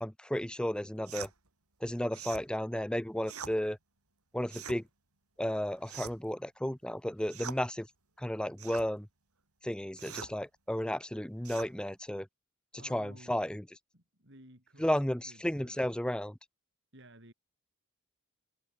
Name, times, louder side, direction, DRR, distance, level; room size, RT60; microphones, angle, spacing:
voice 1, 0.0-1.3 1.8-3.8 4.3-4.8 5.4-7.9 8.2-9.1 9.6-12.3 12.9-13.6 14.8-16.3, equal, 5° left, 0.7 m, -33 dB
sound 1, 1.1-1.3 2.1-2.5 3.2-3.6 4.5-4.8 5.8-6.3 7.3-7.6 8.6-8.9 10.0-10.3 11.4-11.7, right 7 dB, 90° right, 4.6 m, -43 dB
voice 2, 12.8-13.5 13.9-16.0 16.9-17.3, right 1 dB, 55° right, 7.0 m, -56 dB
head